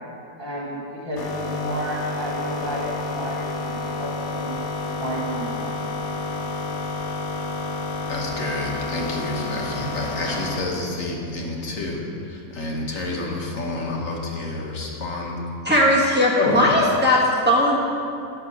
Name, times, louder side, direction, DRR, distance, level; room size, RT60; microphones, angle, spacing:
voice 1, 0.4-4.5 4.9-6.1, equal, 20° left, -4 dB, 0.9 m, -32 dB
sound 1, 1.2-10.7, left 3 dB, 90° left, 1.5 m, -29 dB
voice 2, 8.1-15.4 16.4-16.6, left 2 dB, 55° left, -1 dB, 1.4 m, -29 dB
voice 3, 15.6-17.8, left 1 dB, 5° right, -6 dB, 1.2 m, -18 dB
9.8 x 5.7 x 6.1 m, 2.7 s
omnidirectional pair, 1.7 m